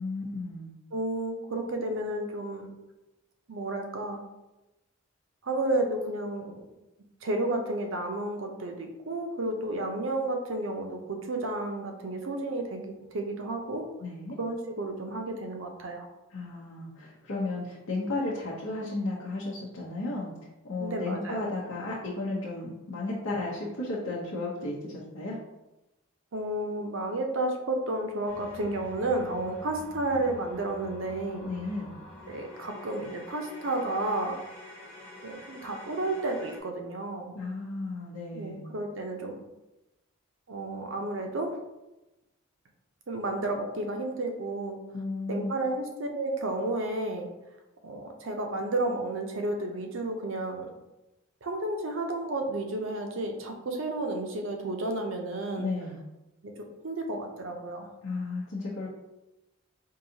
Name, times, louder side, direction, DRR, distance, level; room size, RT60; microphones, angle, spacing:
voice 1, 0.0-0.7 14.0-14.4 16.3-20.3 20.6-25.4 31.3-31.9 37.3-38.6 44.9-45.5 55.6-56.0 58.0-58.9, left 2 dB, 85° left, -6 dB, 0.8 m, -34 dB
voice 2, 0.9-2.7 3.5-4.2 5.4-6.6 7.2-13.8 14.4-16.1 20.8-21.5 26.3-31.5 32.3-34.4 35.2-37.4 38.3-39.4 40.5-41.6 43.1-44.8 45.3-47.3 47.8-50.7 51.4-55.7 56.4-56.5 56.8-57.9, right 2 dB, 70° right, 4 dB, 0.6 m, -32 dB
sound 1, 28.3-36.6, left 1 dB, 5° left, 0.7 m, -47 dB
4.6 x 2.7 x 2.7 m, 0.99 s
head